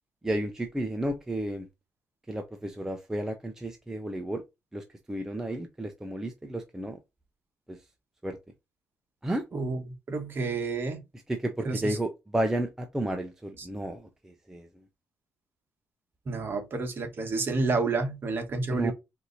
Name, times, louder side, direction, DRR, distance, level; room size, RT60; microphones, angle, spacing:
voice 1, 0.2-1.7 2.3-4.4 4.7-7.0 7.7-7.8 8.2-8.4 9.2-9.4 11.3-14.7 18.7-18.9, right 1 dB, 10° right, 0.5 m, -32 dB
voice 2, 10.1-11.0 11.6-12.0 13.6-13.7 16.3-18.9, right 3 dB, 35° right, 1.2 m, -29 dB
4.5 x 2.6 x 4.0 m
cardioid pair, 145°, 6 cm